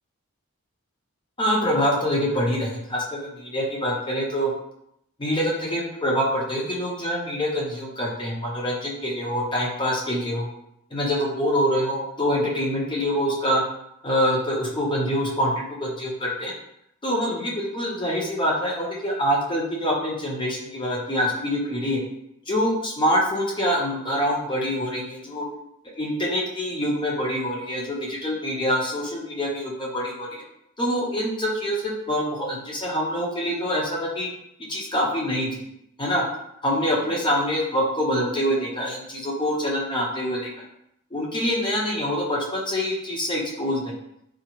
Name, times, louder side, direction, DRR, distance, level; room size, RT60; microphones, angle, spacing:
voice 1, 1.4-4.5 5.2-10.5 10.9-13.6 14.0-16.5 17.0-22.0 22.5-25.4 26.0-30.4 30.8-34.3 34.7-35.5 36.0-36.2 36.6-40.5 41.1-43.9, equal, 25° left, -3 dB, 0.6 m, -25 dB
3.7 x 2.1 x 2.9 m, 0.77 s
head